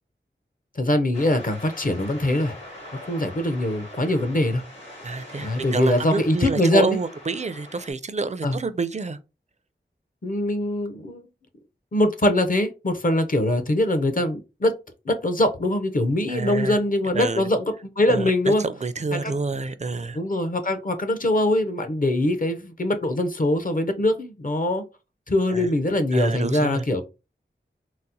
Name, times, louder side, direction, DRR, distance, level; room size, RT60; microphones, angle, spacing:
voice 1, 0.8-2.5 3.1-4.6 5.4-7.0 8.4-8.6 10.2-11.2 11.9-14.7 15.1-18.6 19.1-19.3 20.1-24.8 25.3-27.0, left 1 dB, 45° left, 0.6 m, -23 dB
sound 1, 1.1-7.9, left 1 dB, 75° left, 1.8 m, -42 dB
voice 2, 5.0-9.2 16.3-16.8 17.1-17.5 18.1-20.2 25.5-25.7 26.1-26.8, right 4 dB, 35° right, 0.4 m, -28 dB
4.0 x 2.0 x 2.7 m
wide cardioid pair, 50°, 20 cm